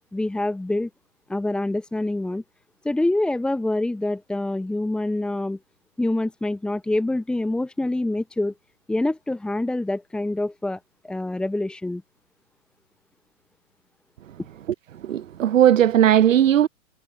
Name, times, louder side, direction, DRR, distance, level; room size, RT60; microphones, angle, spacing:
voice 1, 0.1-0.9 1.3-2.4 2.8-5.6 6.0-8.5 8.9-10.8 11.0-12.0, left 2 dB, ahead, 3.6 m, -25 dB
voice 2, 15.0-16.7, right 10 dB, 75° right, 1.1 m, -17 dB
hypercardioid pair, 170°, 39 cm